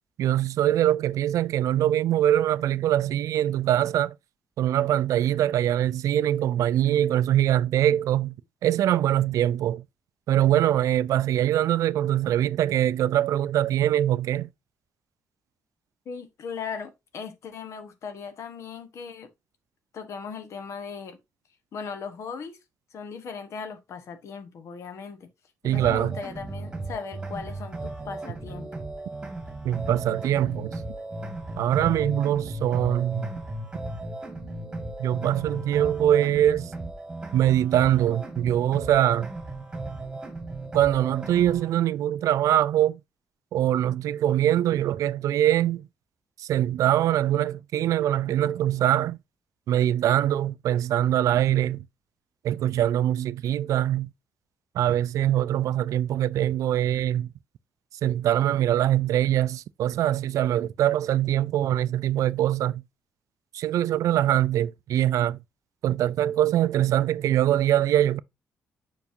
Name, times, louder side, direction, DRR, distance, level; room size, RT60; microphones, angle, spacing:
voice 1, 0.2-4.1 4.6-8.3 8.6-9.8 10.3-14.5 25.6-26.2 29.6-30.7 31.6-33.3 35.0-36.7 37.3-39.3 40.7-43.0 43.5-45.9 46.4-49.2 49.7-51.8 52.4-54.1 54.8-57.3 58.0-62.8 63.5-65.4 65.8-68.2, right 12 dB, 75° right, 0.4 m, -23 dB
voice 2, 16.0-19.3 19.9-21.2 21.7-22.6 22.9-25.3 25.6-28.9, left 6 dB, 55° left, 1.3 m, -38 dB
sound 1, 25.7-41.7, right 2 dB, 15° right, 2.1 m, -36 dB
7.0 x 5.4 x 2.8 m
wide cardioid pair, 170°, 6 cm